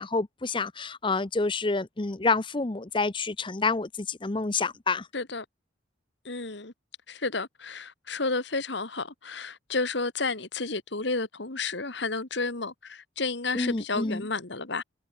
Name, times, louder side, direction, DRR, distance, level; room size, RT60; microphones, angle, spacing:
voice 1, 0.0-5.1 13.5-14.2, left 3 dB, 25° left, 0.7 m, -28 dB
voice 2, 5.1-5.5 6.3-6.7 7.1-14.8, left 3 dB, 65° left, 2.1 m, -31 dB
head